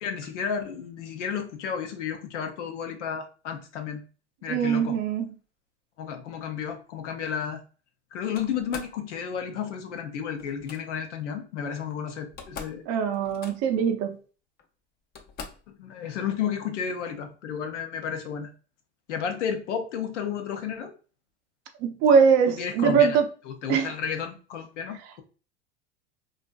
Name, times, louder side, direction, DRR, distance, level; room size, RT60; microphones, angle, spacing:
voice 1, 0.0-4.0 4.4-5.0 6.0-7.6 8.1-12.8 15.8-18.5 19.1-20.9 22.5-23.2 23.4-25.2, left 7 dB, 80° left, 0.7 m, -32 dB
voice 2, 4.5-5.3 12.9-14.2 21.8-23.3 23.7-23.9, right 6 dB, 45° right, 0.5 m, -22 dB
Slam, 8.3-9.0 10.4-10.8 11.9-12.0 12.2-12.8 13.1-13.8 14.6-14.7 15.1-15.7, left 5 dB, 30° left, 0.4 m, -42 dB
2.5 x 2.4 x 2.2 m
hypercardioid pair, 100°, 35 cm